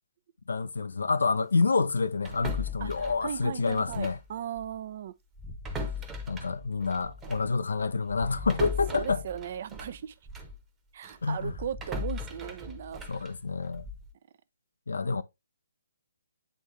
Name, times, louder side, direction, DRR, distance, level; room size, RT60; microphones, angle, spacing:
voice 1, 0.5-4.2 6.3-9.2 11.2-11.5 13.1-13.8 14.9-15.2, left 4 dB, 60° left, 0.6 m, -28 dB
sound 1, 2.3-4.3 4.6-4.8 5.3-10.6 11.0-14.1, left 2 dB, 10° right, 1.0 m, -38 dB
voice 2, 2.8-5.2 8.9-10.2 10.9-13.3 15.0-15.2, right 9 dB, 40° right, 0.5 m, -38 dB
9.1 x 3.6 x 3.2 m
figure-of-eight pair, 135°, 0 cm